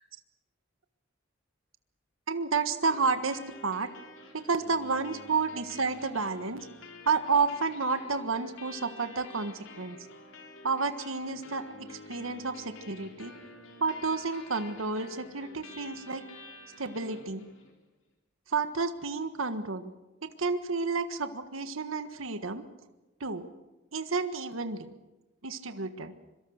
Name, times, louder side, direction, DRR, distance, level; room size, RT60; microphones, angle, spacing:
voice 1, 2.3-3.9 4.3-6.7 7.0-10.0 10.6-13.3 13.8-16.2 16.8-17.5 18.5-19.9 20.2-22.6 23.2-23.4 23.9-24.9 25.4-26.1, right 4 dB, 85° right, 10 dB, 1.5 m, -31 dB
sound 1, 2.8-17.8, left 2 dB, 80° left, 4.2 m, -49 dB
25.5 x 24.0 x 6.5 m, 1.1 s
head